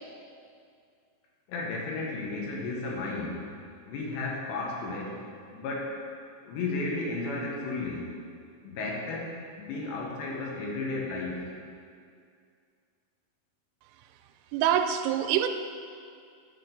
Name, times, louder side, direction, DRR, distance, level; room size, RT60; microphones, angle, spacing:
voice 1, 1.5-3.5 3.9-5.2 5.5-5.9 6.5-8.1 8.6-11.5, left 3 dB, 75° left, -2 dB, 2.9 m, -33 dB
voice 2, 14.5-15.5, right 10 dB, 90° right, 7 dB, 3.1 m, -25 dB
10.0 x 4.4 x 5.1 m, 2.3 s
omnidirectional pair, 5.7 m